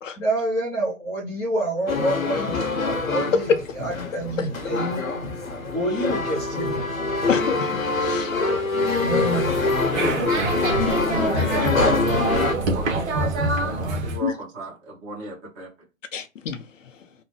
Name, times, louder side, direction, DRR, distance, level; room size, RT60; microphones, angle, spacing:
voice 1, 0.2-5.0 5.7-6.8 9.0-9.6, right 1 dB, 10° left, 0.5 m, -27 dB
sound 1, 1.9-12.5, left 3 dB, 80° left, 0.9 m, -25 dB
voice 2, 7.3-8.3 10.0-10.4 14.2-14.3 16.1-16.6, left 7 dB, 65° left, 0.6 m, -29 dB
sound 2, 8.8-14.2, right 2 dB, 55° right, 1.0 m, -25 dB
voice 3, 10.5-11.7 12.6-15.7, right 2 dB, 25° right, 1.3 m, -37 dB
3.1 x 2.1 x 3.1 m
figure-of-eight pair, 120°, 40 cm